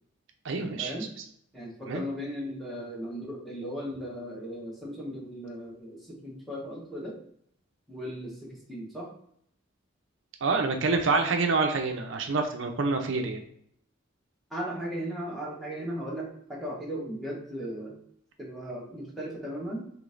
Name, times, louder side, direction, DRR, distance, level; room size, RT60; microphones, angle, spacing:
voice 1, 0.4-0.9 1.9-2.0 10.4-13.4, right 3 dB, 65° right, 4 dB, 0.5 m, -27 dB
voice 2, 1.5-7.2 7.9-9.1 14.5-18.0 18.4-19.9, equal, ahead, -4 dB, 1.1 m, -37 dB
5.0 x 3.2 x 2.5 m, 0.69 s
head